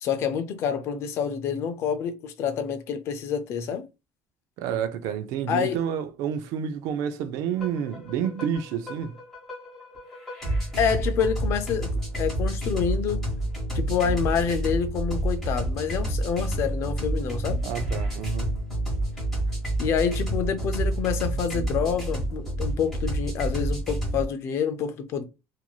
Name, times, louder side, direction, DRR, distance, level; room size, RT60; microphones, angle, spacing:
voice 1, 0.0-3.8 5.5-5.8 10.8-13.2 13.7-17.6 19.8-25.2, left 7 dB, 40° left, 0.4 m, -27 dB
voice 2, 4.6-9.2 17.6-18.5, right 8 dB, 55° right, 0.4 m, -29 dB
sound 1, 7.6-24.2, right 1 dB, 5° left, 1.3 m, -29 dB
3.0 x 2.6 x 2.2 m
cardioid pair, 180°, 7 cm